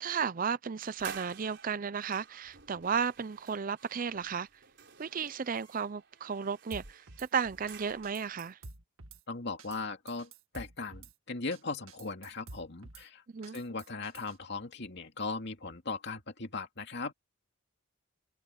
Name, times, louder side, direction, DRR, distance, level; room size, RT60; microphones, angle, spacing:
voice 1, 0.0-4.5 5.0-8.6 13.3-13.6, right 6 dB, 40° right, 0.5 m, -34 dB
sound 1, 0.8-8.3, right 7 dB, 55° right, 4.6 m, -51 dB
Drum kit / Snare drum, 6.7-7.3 7.7-7.8 8.0-9.2 9.6-9.8 10.1-11.1 11.5-11.6 11.9-13.0 13.4-14.4, right 3 dB, 80° right, 1.9 m, -49 dB
voice 2, 9.3-13.2 13.5-17.1, left 3 dB, 55° left, 2.5 m, -38 dB
head